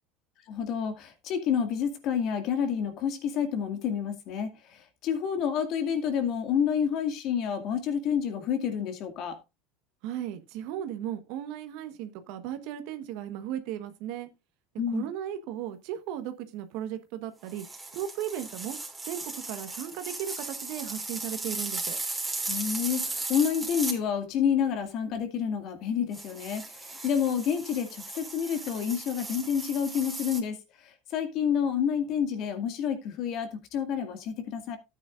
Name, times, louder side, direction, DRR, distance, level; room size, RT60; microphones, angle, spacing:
voice 1, 0.5-9.4 14.8-15.0 22.5-30.6 30.8-34.8, left 8 dB, 55° left, 2.2 m, -29 dB
voice 2, 10.0-14.3 14.9-17.6 17.9-18.8 19.1-22.0, right 10 dB, 65° right, 1.3 m, -36 dB
sound 1, 17.5-24.0 26.1-30.4, right 3 dB, 10° right, 3.1 m, -36 dB
13.0 x 9.1 x 2.5 m
hypercardioid pair, 85°, 0 cm